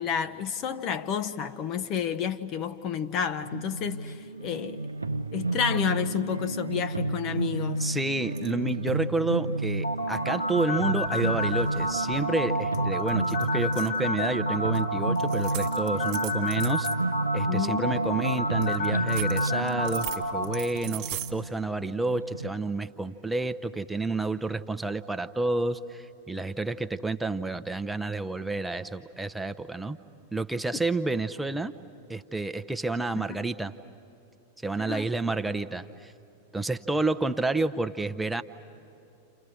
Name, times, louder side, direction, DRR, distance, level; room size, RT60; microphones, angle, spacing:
voice 1, 0.0-4.8 5.3-7.9 13.3-13.4 17.5-17.9 30.7-30.8 33.2-33.4 34.8-35.1, left 8 dB, 35° left, 0.9 m, -30 dB
sound 1, 3.4-22.5, right 2 dB, 80° right, 0.6 m, -31 dB
voice 2, 7.8-16.9 17.3-30.0 30.3-31.7 32.1-33.7 34.6-36.1 36.5-38.4, right 2 dB, 5° right, 0.8 m, -30 dB
sound 2, 8.3-8.7 11.0-12.4 12.7-12.8 13.1-14.0 14.7-14.8 15.1-17.0 18.6-21.3, right 13 dB, 45° right, 1.4 m, -39 dB
sound 3, 9.8-20.4, left 1 dB, 80° left, 4.2 m, -30 dB
29.5 x 29.5 x 6.4 m
figure-of-eight pair, 90°, 0 cm